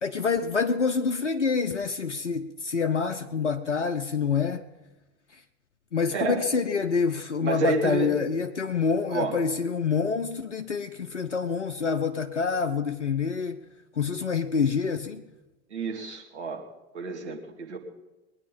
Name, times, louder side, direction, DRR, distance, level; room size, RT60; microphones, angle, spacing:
voice 1, 0.0-4.6 5.9-13.6 14.0-15.2, left 5 dB, 85° left, 7 dB, 0.7 m, -27 dB
voice 2, 7.4-8.2 9.1-9.3 15.7-16.6 16.9-17.8, right 4 dB, 70° right, 1 dB, 2.4 m, -29 dB
21.0 x 9.7 x 5.4 m, 1.1 s
figure-of-eight pair, 75°, 35 cm